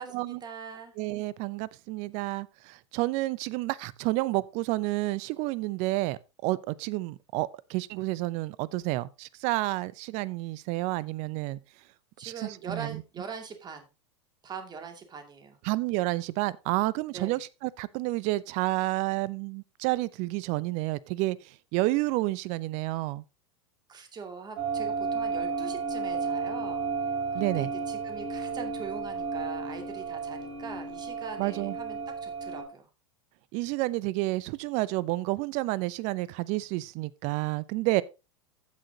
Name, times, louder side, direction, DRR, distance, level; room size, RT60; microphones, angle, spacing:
voice 1, 0.0-0.9 12.2-13.9 14.4-15.6 17.1-17.4 23.9-26.9 27.4-32.9, right 5 dB, 25° right, 2.4 m, -42 dB
voice 2, 1.0-11.6 12.2-13.0 15.6-21.4 21.7-23.2 27.3-27.7 31.4-31.7 33.5-38.0, right 19 dB, 50° right, 0.7 m, -30 dB
sound 1, 24.6-32.6, right 4 dB, 85° right, 2.4 m, -33 dB
15.0 x 6.3 x 2.8 m
hypercardioid pair, 90°, 15 cm